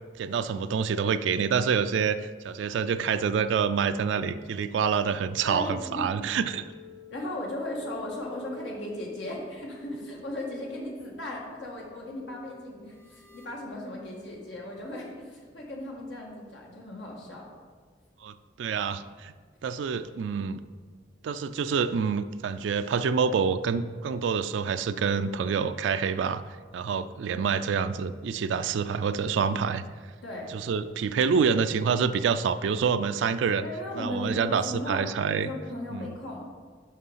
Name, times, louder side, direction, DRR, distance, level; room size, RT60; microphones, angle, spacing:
voice 1, 0.2-2.2 2.4-6.7 18.2-19.3 19.6-20.6 21.2-26.4 26.7-29.8 30.7-33.7 34.0-35.5 35.9-36.1, right 6 dB, 70° right, 11 dB, 0.3 m, -27 dB
voice 2, 5.4-6.1 7.1-17.5 30.2-30.5 33.6-35.0 35.3-36.4, left 1 dB, 70° left, -2 dB, 1.7 m, -37 dB
sound 1, 5.6-14.8, equal, 10° left, 0.7 m, -50 dB
6.4 x 5.6 x 5.5 m, 1.6 s
head